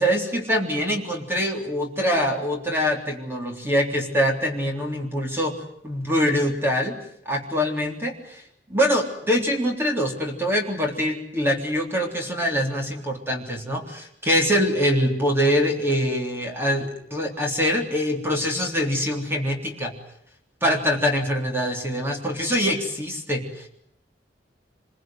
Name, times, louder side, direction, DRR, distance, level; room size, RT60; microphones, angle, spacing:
voice 1, 0.0-5.6 5.8-7.0 7.3-8.4 8.7-19.9 20.6-23.7, equal, 15° right, 1 dB, 3.5 m, -24 dB
25.5 x 22.5 x 9.3 m, 0.69 s
head